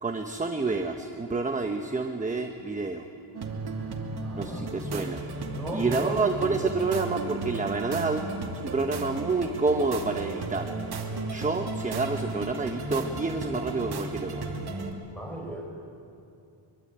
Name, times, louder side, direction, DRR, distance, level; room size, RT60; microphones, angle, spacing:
voice 1, 0.0-3.0 4.4-5.2 5.7-8.2 8.6-10.7 11.3-14.4, right 3 dB, 15° right, 5 dB, 1.0 m, -28 dB
sound 1, 3.3-14.9, right 3 dB, 50° right, 2.7 m, -35 dB
voice 2, 4.1-4.7 5.4-6.3 15.1-15.6, right 1 dB, 5° left, -1 dB, 5.5 m, -37 dB
24.0 x 23.0 x 8.9 m, 2.5 s
wide cardioid pair, 175°, 50 cm